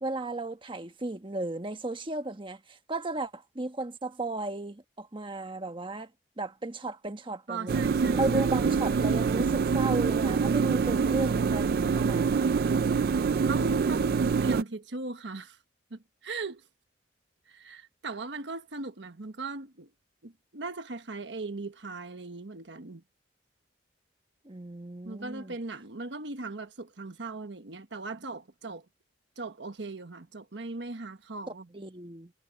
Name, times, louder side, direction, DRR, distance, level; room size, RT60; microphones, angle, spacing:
voice 1, 0.0-6.1 6.4-7.8 8.1-11.7 11.9-12.7 24.4-25.5 31.7-32.3, right 2 dB, 30° right, 1.3 m, -35 dB
voice 2, 7.5-8.5 13.5-14.1 14.4-15.6 15.9-16.6 17.5-19.9 20.2-23.0 25.0-28.8 29.4-31.7, right 3 dB, 75° right, 1.3 m, -38 dB
sound 1, 7.7-14.6, right 5 dB, 55° right, 0.3 m, -25 dB
head